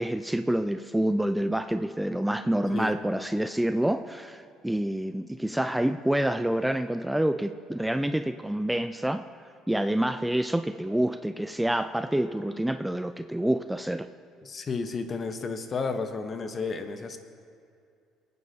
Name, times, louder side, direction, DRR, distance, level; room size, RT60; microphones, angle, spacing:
voice 1, 0.0-9.2 9.7-14.1, right 1 dB, 5° right, 10 dB, 0.4 m, -27 dB
voice 2, 14.4-17.2, left 4 dB, 40° left, 7 dB, 1.1 m, -32 dB
26.0 x 9.4 x 2.9 m, 2.4 s
hypercardioid pair, 65°, 0 cm